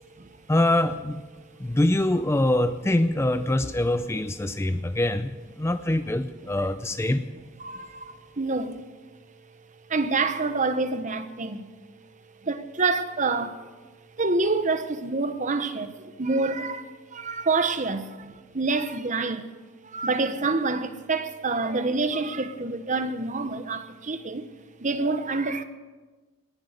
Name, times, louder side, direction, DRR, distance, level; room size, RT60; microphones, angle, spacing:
voice 1, 0.5-1.2 1.6-7.2, left 1 dB, 10° left, 0.4 m, -24 dB
voice 2, 7.6-9.0 9.9-11.7 12.4-13.7 14.2-19.5 19.8-24.5 24.8-25.6, right 3 dB, 35° right, 1.0 m, -27 dB
19.5 x 11.5 x 6.6 m
head